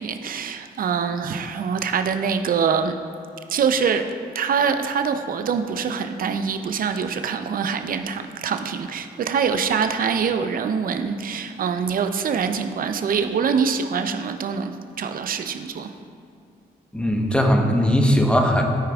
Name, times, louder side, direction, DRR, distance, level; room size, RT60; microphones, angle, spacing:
voice 1, 0.0-2.9 3.5-4.1 4.3-15.9, right 6 dB, 50° right, 8 dB, 0.5 m, -24 dB
voice 2, 16.9-18.6, equal, 5° left, 2 dB, 1.1 m, -19 dB
13.5 x 4.8 x 2.4 m, 2.3 s
supercardioid pair, 55°, 18 cm